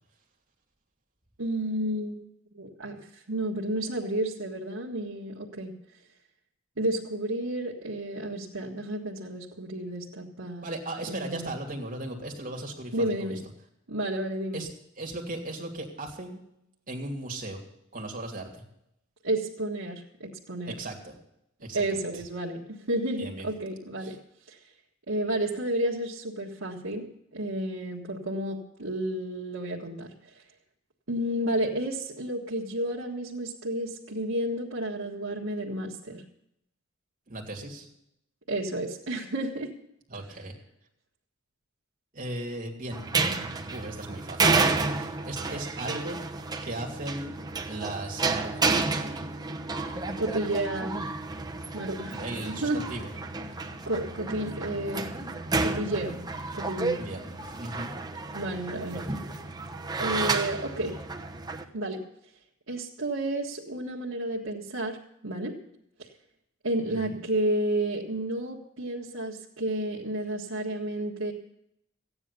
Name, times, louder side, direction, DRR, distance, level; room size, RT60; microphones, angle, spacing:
voice 1, 1.4-2.3 2.5-5.7 6.8-10.7 11.1-11.5 12.9-13.4 13.9-14.6 19.2-20.8 21.7-24.2 24.5-24.6 25.1-27.1 27.3-30.4 31.1-36.2 38.5-39.7 50.2-51.0 51.7-52.8 53.8-55.1 55.6-56.2 56.5-57.0 58.3-59.0 60.0-60.9 61.7-62.0 62.7-65.0 65.2-65.6 66.6-71.3, right 1 dB, 85° right, -3 dB, 1.6 m, -31 dB
voice 2, 10.6-12.9 13.2-13.3 14.5-14.7 15.0-16.4 16.9-17.6 17.9-18.5 20.7-21.1 21.6-22.2 23.2-23.5 24.0-24.2 37.3-37.9 40.1-40.5 42.1-43.0 43.7-46.2 46.6-47.4 47.7-49.2 52.0-53.1 57.0-57.9 58.9-59.2 66.9-67.2, right 1 dB, 40° right, 1 dB, 2.7 m, -37 dB
sound 1, 42.9-61.6, right 3 dB, 20° right, 1.0 m, -31 dB
15.0 x 9.7 x 6.9 m, 0.79 s
head